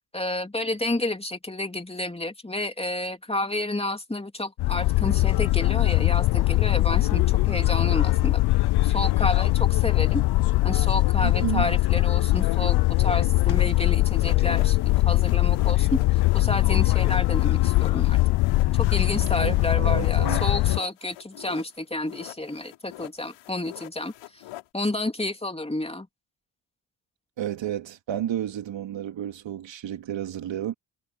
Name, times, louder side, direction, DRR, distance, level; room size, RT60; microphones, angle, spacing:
voice 1, 0.1-8.4 8.8-10.2 10.6-14.8 15.0-16.0 16.3-18.2 18.7-24.4 24.7-26.1, left 2 dB, 10° left, 3.2 m, -30 dB
sound 1, 4.6-20.8, left 19 dB, 55° left, 0.5 m, -21 dB
voice 2, 11.2-11.7 19.4-20.5 27.4-30.7, right 11 dB, 60° right, 2.5 m, -31 dB
sound 2, 13.4-21.8 22.1-24.7, left 16 dB, 80° left, 6.6 m, -43 dB
supercardioid pair, 55°, 50 cm